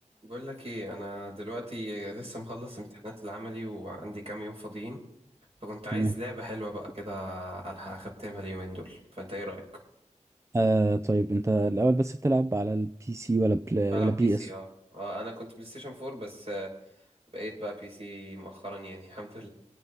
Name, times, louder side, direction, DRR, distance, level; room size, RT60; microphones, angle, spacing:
voice 1, 0.2-5.0 5.6-9.6 13.9-14.7 14.9-16.7 17.3-19.5, equal, 50° right, -1 dB, 6.0 m, -38 dB
voice 2, 10.5-14.5, right 2 dB, 20° right, 9 dB, 0.5 m, -25 dB
25.5 x 9.1 x 4.0 m, 0.71 s
wide cardioid pair, 55°, 13 cm